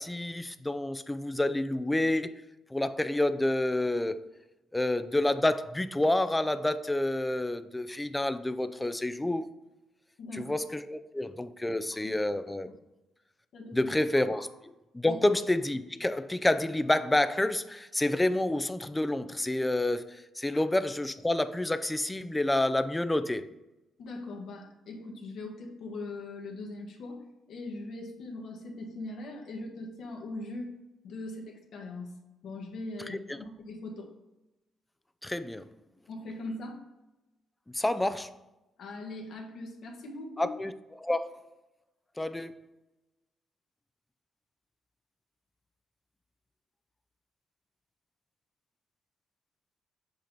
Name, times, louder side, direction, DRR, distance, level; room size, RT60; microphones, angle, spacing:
voice 1, 0.0-2.4 2.7-4.2 4.7-9.5 10.4-12.7 13.7-14.5 14.9-20.1 20.4-23.5 33.1-33.4 35.2-35.7 37.7-38.3 40.4-41.3 42.2-42.6, left 1 dB, 10° left, 0.4 m, -29 dB
voice 2, 10.2-10.5 11.7-12.2 13.5-13.9 14.3-14.4 15.0-15.2 20.5-20.6 24.0-30.7 31.0-32.2 32.4-34.1 36.1-36.8 38.8-40.5, left 2 dB, 70° left, 1.5 m, -41 dB
7.6 x 3.0 x 5.2 m
cardioid pair, 90°, 0 cm